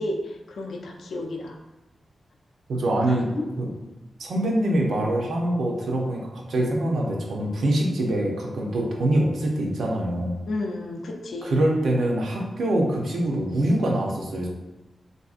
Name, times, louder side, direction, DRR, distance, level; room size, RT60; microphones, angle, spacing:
voice 1, 0.0-1.6 3.1-3.4 10.5-11.6, left 2 dB, 75° left, 2 dB, 0.4 m, -32 dB
voice 2, 2.7-3.3 3.6-3.7 4.2-10.4 11.4-14.5, right 1 dB, 80° right, -1 dB, 0.6 m, -24 dB
3.4 x 2.6 x 2.4 m, 1.1 s
wide cardioid pair, 165°, 0 cm